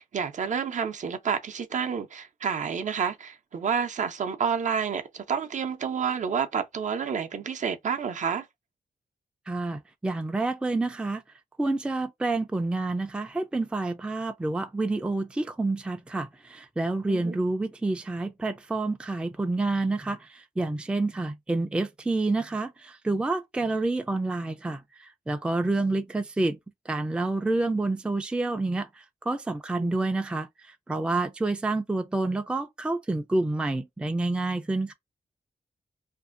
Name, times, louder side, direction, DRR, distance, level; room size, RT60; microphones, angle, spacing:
voice 1, 0.0-8.5 17.1-17.4 29.8-30.1, right 7 dB, 55° right, 0.6 m, -29 dB
voice 2, 9.5-11.2 11.6-26.6 26.9-28.9 29.2-30.5 30.9-34.9, right 2 dB, 5° right, 0.4 m, -28 dB
2.6 x 2.4 x 2.4 m
wide cardioid pair, 120°, 15 cm